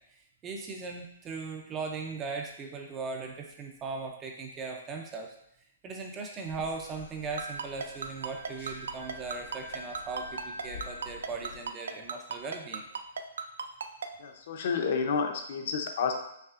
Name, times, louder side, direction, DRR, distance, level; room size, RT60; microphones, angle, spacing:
voice 1, 0.0-5.3 5.8-12.9, right 4 dB, 15° right, 2 dB, 0.3 m, -38 dB
sound 1, 6.5-11.7, left 5 dB, 75° left, 1.5 m, -50 dB
Wind instrument woodwind instrument, 7.3-11.0, right 1 dB, 60° right, 1.0 m, -46 dB
Ringtone, 7.4-14.1, right 6 dB, 85° right, 0.4 m, -35 dB
voice 2, 14.2-16.1, left 5 dB, 45° left, 5 dB, 0.5 m, -30 dB
5.5 x 3.2 x 2.4 m, 0.77 s
hypercardioid pair, 175°, 0 cm